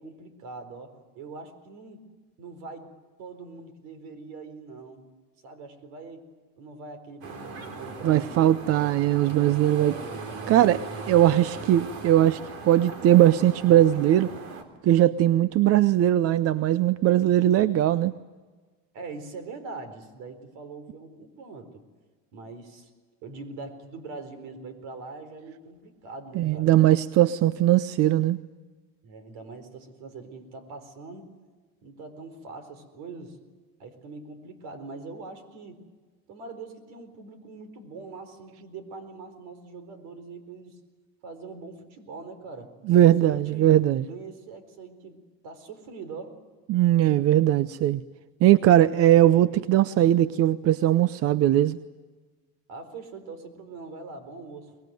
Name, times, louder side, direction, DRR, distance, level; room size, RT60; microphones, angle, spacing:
voice 1, 0.0-2.0 2.4-2.9 3.2-5.0 5.4-6.3 6.6-9.0 9.7-11.6 18.9-21.8 22.3-22.9 23.2-26.7 29.0-31.3 31.8-33.4 33.8-35.8 36.3-40.8 41.2-43.7 44.0-46.4 52.7-54.8, right 4 dB, 70° right, 9 dB, 4.3 m, -42 dB
sound 1, 7.2-14.6, right 4 dB, 85° right, 3.9 m, -39 dB
voice 2, 8.0-9.9 10.5-10.8 11.1-12.4 12.6-14.3 14.8-18.1 26.4-28.4 42.9-44.1 46.7-48.0 48.4-51.8, right 13 dB, 45° right, 15 dB, 0.7 m, -20 dB
23.5 x 20.5 x 9.3 m, 1.4 s
cardioid pair, 120°, 32 cm